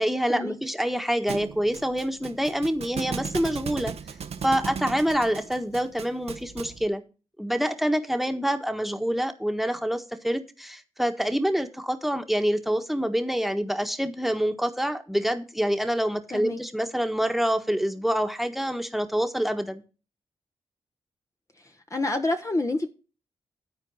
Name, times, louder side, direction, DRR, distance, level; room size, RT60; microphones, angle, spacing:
voice 1, 0.0-3.9 4.4-7.0 7.4-19.8, equal, ahead, 1.4 m, -26 dB
Thump thud, 1.3-6.9, right 6 dB, 65° right, 0.8 m, -37 dB
voice 2, 21.9-22.9, left 2 dB, 25° left, 1.1 m, -27 dB
12.5 x 4.5 x 6.3 m
supercardioid pair, 45°, 12 cm